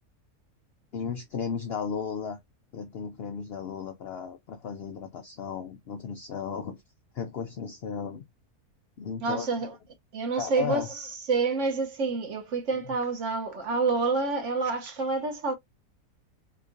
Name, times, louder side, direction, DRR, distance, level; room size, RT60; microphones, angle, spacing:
voice 1, 0.9-2.4 2.7-6.8 7.1-8.2 9.0-9.5 10.4-10.9, left 6 dB, 80° left, 0.5 m, -35 dB
voice 2, 9.2-9.7 10.1-15.5, right 4 dB, 60° right, 1.0 m, -28 dB
3.8 x 3.0 x 2.5 m
omnidirectional pair, 1.6 m